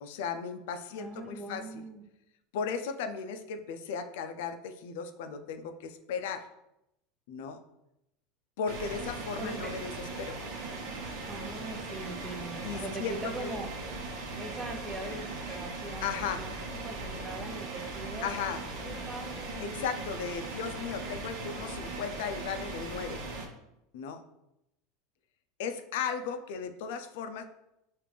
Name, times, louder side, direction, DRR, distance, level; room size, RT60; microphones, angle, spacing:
voice 1, 0.0-1.8 2.5-6.5 7.3-7.6 8.6-9.9 10.2-10.4 12.6-13.5 16.0-16.4 18.2-18.6 19.6-23.2 23.9-24.2 25.6-27.4, left 6 dB, 75° left, 8 dB, 0.4 m, -36 dB
voice 2, 1.0-2.0 9.4-9.7 11.2-13.7 14.3-19.8, right 2 dB, 15° right, 3 dB, 0.7 m, -41 dB
sound 1, 8.7-23.5, right 3 dB, 65° right, 0.8 m, -39 dB
4.9 x 2.5 x 3.3 m, 0.84 s
supercardioid pair, 125°, 0 cm